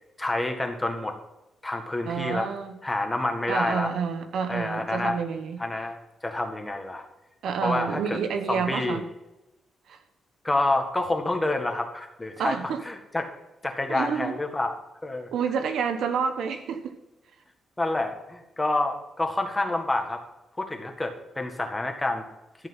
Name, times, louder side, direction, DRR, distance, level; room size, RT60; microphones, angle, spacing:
voice 1, 0.2-1.1 1.6-2.5 2.8-3.9 4.5-5.2 5.6-7.1 7.6-8.2 8.5-9.0 10.4-13.2 13.6-14.7 15.0-15.3 17.8-20.2 20.6-22.2, left 2 dB, 15° left, 4 dB, 1.8 m, -28 dB
voice 2, 2.1-2.7 3.5-5.6 7.4-9.0 9.9-10.0 12.4-12.8 13.9-14.4 15.3-16.9, right 6 dB, 80° right, 8 dB, 1.3 m, -29 dB
13.0 x 7.3 x 5.7 m, 0.98 s
cardioid pair, 120°, 0 cm